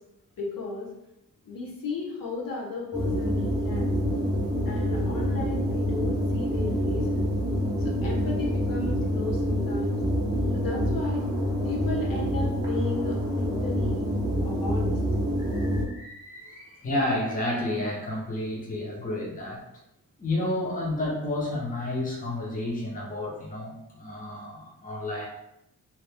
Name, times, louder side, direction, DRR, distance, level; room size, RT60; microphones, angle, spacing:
voice 1, 0.4-0.9 1.4-3.9 4.6-7.3 7.8-10.0 10.5-11.2 11.6-14.0 14.4-15.0, left 3 dB, 75° left, -4 dB, 1.0 m, -34 dB
sound 1, 2.9-15.9, equal, 10° right, 0.8 m, -27 dB
voice 2, 15.4-19.6 20.2-25.3, left 1 dB, 25° left, -3 dB, 0.8 m, -31 dB
2.9 x 2.4 x 3.4 m, 0.85 s
wide cardioid pair, 110°, 34 cm